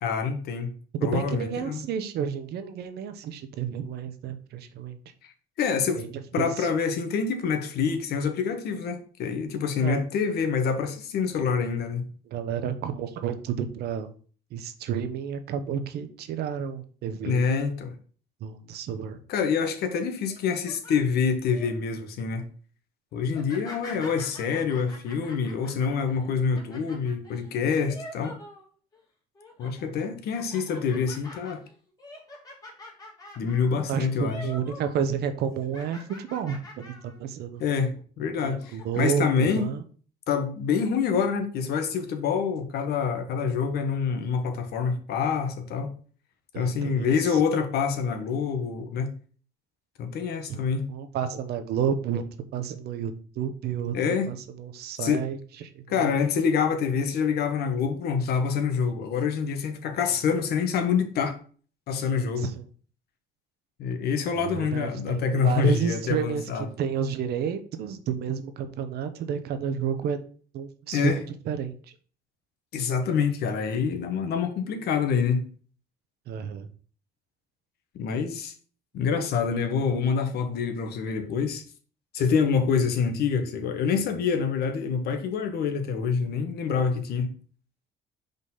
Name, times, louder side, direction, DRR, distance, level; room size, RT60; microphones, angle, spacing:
voice 1, 0.0-0.7 1.0-1.8 5.6-6.0 6.3-12.1 17.2-17.9 19.3-22.4 23.1-28.3 29.6-31.6 33.4-34.5 37.6-37.9 38.2-39.7 40.3-45.9 46.5-49.1 50.0-50.9 53.9-54.3 55.0-55.2 55.9-61.3 61.9-62.5 63.8-66.7 70.9-71.2 72.7-75.5 77.9-78.5 78.9-81.6 82.1-87.4, left 6 dB, 70° left, 1.3 m, -26 dB
voice 2, 0.9-5.0 6.0-6.7 9.8-10.1 12.3-14.1 14.5-17.4 18.4-19.2 33.9-37.6 38.4-39.8 46.5-47.4 50.5-52.2 52.5-53.9 54.3-56.1 62.4-62.7 64.3-70.3 70.5-71.8 76.3-76.7, right 8 dB, 70° right, 0.9 m, -31 dB
sound 1, 20.3-21.7 22.2-22.5 23.3-29.0 29.3-29.8 30.3-35.0 35.2-37.2 37.6-37.7 38.5-39.0, left 1 dB, 20° left, 2.4 m, -46 dB
5.2 x 4.0 x 5.6 m
cardioid pair, 110°, 17 cm